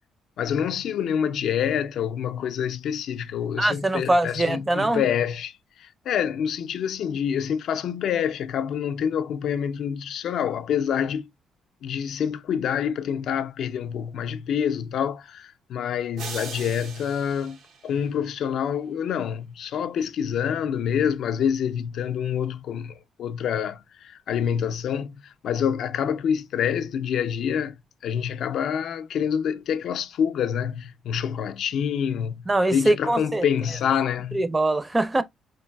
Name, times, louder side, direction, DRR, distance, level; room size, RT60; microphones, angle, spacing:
voice 1, 0.4-5.5 5.8-11.3 11.8-17.6 17.8-27.8 28.0-34.5, left 8 dB, 70° left, 0.4 m, -27 dB
voice 2, 3.6-5.0 32.5-33.4 34.3-35.2, right 2 dB, 20° right, 0.5 m, -22 dB
sound 1, 16.2-18.5, right 6 dB, 80° right, 0.7 m, -40 dB
4.4 x 3.2 x 2.2 m
cardioid pair, 90°, 0 cm